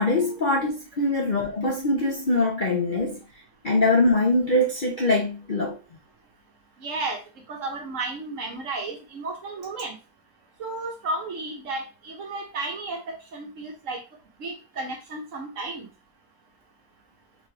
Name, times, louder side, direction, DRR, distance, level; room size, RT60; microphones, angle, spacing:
voice 1, 0.0-3.2 3.6-5.8, left 2 dB, 40° left, 0.8 m, -23 dB
voice 2, 6.8-7.2 7.5-10.0 10.6-14.0 14.4-15.9, right 2 dB, 55° right, 1.5 m, -33 dB
3.8 x 3.6 x 3.3 m
omnidirectional pair, 1.6 m